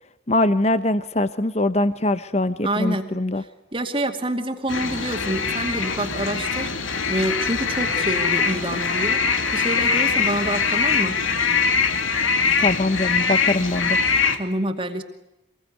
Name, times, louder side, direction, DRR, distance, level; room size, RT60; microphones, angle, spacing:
voice 1, 0.3-3.4 12.6-14.0, left 2 dB, 35° left, 13 dB, 0.9 m, -22 dB
voice 2, 2.6-3.1 3.4-3.5 3.7-6.7 7.1-9.2 9.5-11.2 13.6-13.7 14.4-15.0, right 1 dB, 25° right, 5 dB, 2.4 m, -27 dB
sound 1, 4.7-14.4, left 5 dB, 85° left, 2.8 m, -22 dB
sound 2, 4.9-11.5, left 2 dB, 70° left, 6.0 m, -42 dB
26.5 x 21.5 x 9.6 m, 0.94 s
head